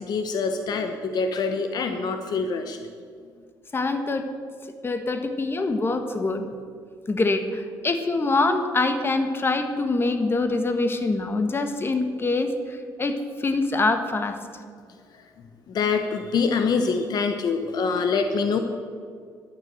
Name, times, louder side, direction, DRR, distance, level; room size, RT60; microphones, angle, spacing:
voice 1, 0.0-2.9 15.1-15.2 15.7-18.6, left 5 dB, 60° left, 6 dB, 1.1 m, -25 dB
voice 2, 3.7-4.3 4.8-6.4 7.1-14.4, left 3 dB, 30° left, 7 dB, 1.5 m, -24 dB
12.0 x 9.8 x 7.9 m, 2.1 s
supercardioid pair, 80°, 8 cm